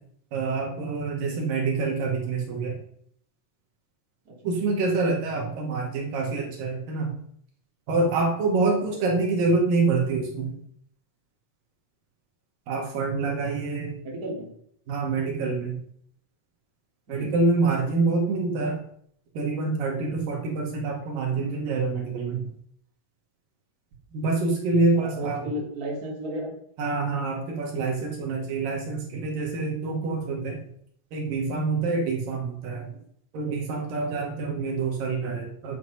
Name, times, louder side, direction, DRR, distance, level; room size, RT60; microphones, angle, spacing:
voice 1, 0.3-2.8 4.4-7.2 7.9-10.6 12.7-14.0 14.9-15.8 17.1-18.8 19.4-22.5 24.1-25.5 26.8-30.6 31.1-32.9 33.3-35.8, right 3 dB, 75° right, 0 dB, 3.8 m, -26 dB
voice 2, 14.0-14.5 17.1-17.3 24.9-26.5 34.1-34.2, right 1 dB, 25° right, -2 dB, 3.3 m, -34 dB
11.0 x 8.3 x 5.6 m, 0.66 s
omnidirectional pair, 4.1 m